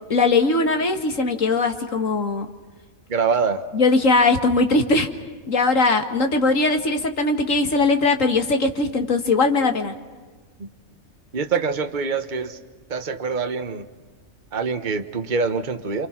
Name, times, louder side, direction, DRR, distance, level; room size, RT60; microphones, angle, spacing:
voice 1, 0.1-2.5 3.7-5.1 5.5-9.9, left 3 dB, 60° left, 5 dB, 2.3 m, -20 dB
voice 2, 3.1-3.6 10.6-10.7 11.3-12.6 12.9-13.9 14.5-16.1, right 5 dB, 35° right, 7 dB, 1.3 m, -24 dB
28.5 x 28.0 x 6.0 m, 1.3 s
omnidirectional pair, 1.5 m